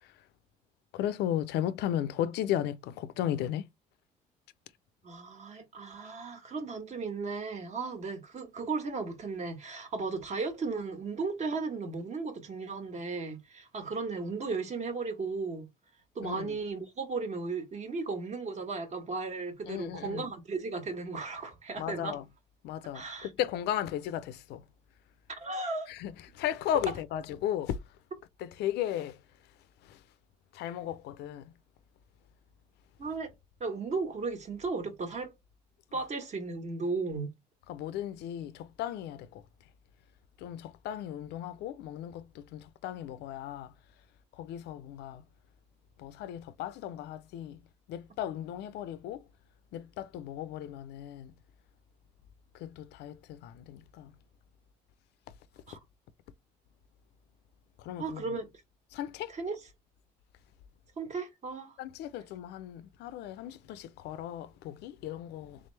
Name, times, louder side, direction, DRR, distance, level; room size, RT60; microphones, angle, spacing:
voice 1, 0.9-3.7 16.2-16.5 19.6-20.3 21.8-22.2 22.6-24.6 25.9-27.8 28.4-29.2 29.9-30.0 30.5-31.5 37.7-39.4 40.4-43.7 44.4-45.2 46.0-47.6 47.9-49.2 49.7-51.3 52.6-54.1 57.8-58.2 58.9-59.3 61.8-65.6, left 11 dB, 80° left, 0.5 m, -35 dB
voice 2, 5.0-15.7 16.1-22.2 22.9-23.3 25.3-25.9 33.0-33.3 33.6-35.3 35.9-37.3 55.7-55.8 58.0-58.5 59.3-59.6 61.0-61.7, right 4 dB, 45° right, 1.4 m, -35 dB
3.6 x 3.4 x 3.2 m
cardioid pair, 110°, 17 cm